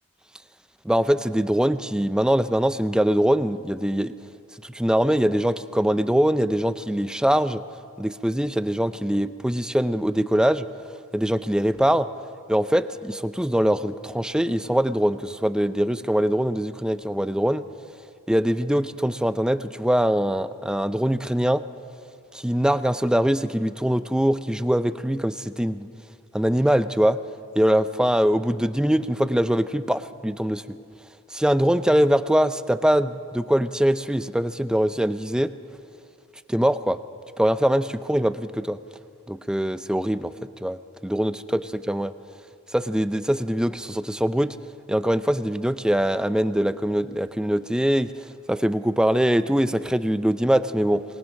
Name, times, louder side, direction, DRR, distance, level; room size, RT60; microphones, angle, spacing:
voice 1, 0.8-4.1 4.6-7.6 8.0-10.7 11.1-12.1 12.5-17.6 18.3-21.6 22.3-25.9 26.3-27.2 27.6-30.8 31.3-35.5 36.5-37.0 37.4-38.8 39.3-40.3 40.6-42.1 42.7-44.6 44.9-48.1 48.5-51.0, equal, 5° right, 12 dB, 0.5 m, -22 dB
26.5 x 19.5 x 6.4 m, 2.5 s
head